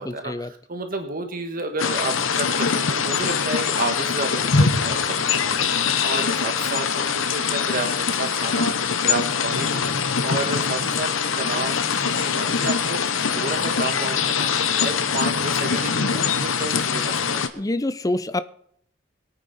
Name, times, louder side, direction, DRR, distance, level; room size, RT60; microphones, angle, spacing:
voice 1, 0.0-9.9 10.2-14.5 14.8-17.4, right 2 dB, 45° right, 1.5 m, -31 dB
sound 1, 1.8-17.5, left 6 dB, 75° left, 1.1 m, -23 dB
voice 2, 17.5-18.4, left 2 dB, 15° left, 0.6 m, -25 dB
21.0 x 9.2 x 4.2 m
head